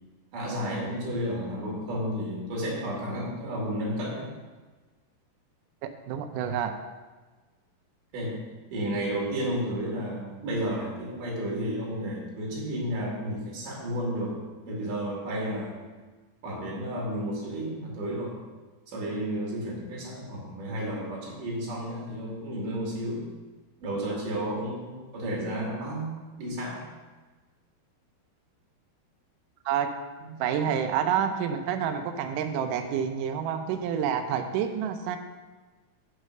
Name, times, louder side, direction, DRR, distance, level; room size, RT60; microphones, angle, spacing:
voice 1, 0.3-4.3 8.1-8.4 8.7-14.4 14.6-15.8 16.4-18.4 18.9-23.3 23.8-26.1 26.4-26.9 30.2-30.3, equal, 55° right, -3 dB, 3.8 m, -32 dB
voice 2, 5.8-6.7 29.7-29.9 30.4-35.2, right 8 dB, 90° right, 6 dB, 1.8 m, -28 dB
8.1 x 6.4 x 6.6 m, 1.3 s
omnidirectional pair, 4.7 m